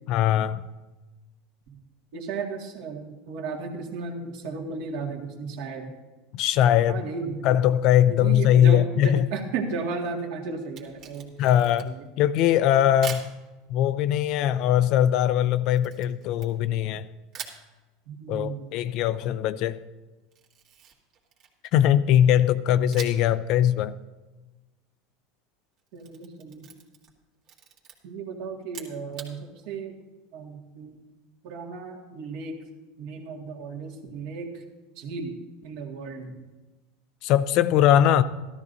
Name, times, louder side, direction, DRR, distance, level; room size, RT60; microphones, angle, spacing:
voice 1, 0.1-0.6 6.3-7.0 7.4-9.2 11.4-13.3 13.7-17.1 18.3-19.8 21.7-23.9 37.2-38.2, left 10 dB, 55° left, 0.4 m, -21 dB
voice 2, 2.1-5.9 6.9-7.5 8.1-11.3 11.8-12.1 18.1-18.7 25.9-26.7 28.0-30.0 30.3-31.0 31.4-32.6 33.0-34.5 35.0-35.3 35.6-36.4, right 4 dB, 65° right, 1.9 m, -34 dB
Camera, 10.6-12.1 13.0-13.3 15.8-16.9 17.3-17.6 20.3-21.8 22.9-23.4 23.7-23.8 25.8-27.2 27.4-27.9 28.6-29.3, right 7 dB, 50° right, 1.8 m, -42 dB
13.5 x 13.0 x 2.7 m
supercardioid pair, 125°, 0 cm